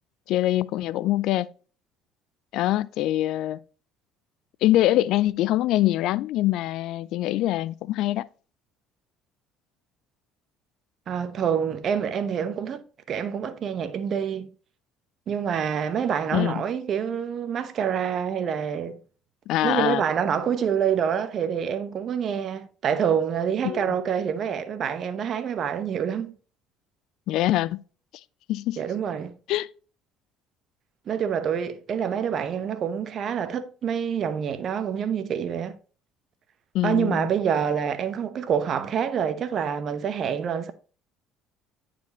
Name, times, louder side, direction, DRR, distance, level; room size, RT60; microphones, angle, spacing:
voice 1, 0.3-1.5 2.5-3.6 4.6-8.3 16.3-16.6 19.5-20.0 23.6-23.9 27.3-27.8 28.5-28.8 29.5-29.7 36.7-37.3, left 15 dB, 65° left, 0.3 m, -24 dB
voice 2, 11.1-14.5 15.3-19.0 19.6-26.3 28.8-29.3 31.1-35.8 36.8-40.7, right 7 dB, 50° right, 0.8 m, -27 dB
9.5 x 4.3 x 2.9 m
hypercardioid pair, 65°, 0 cm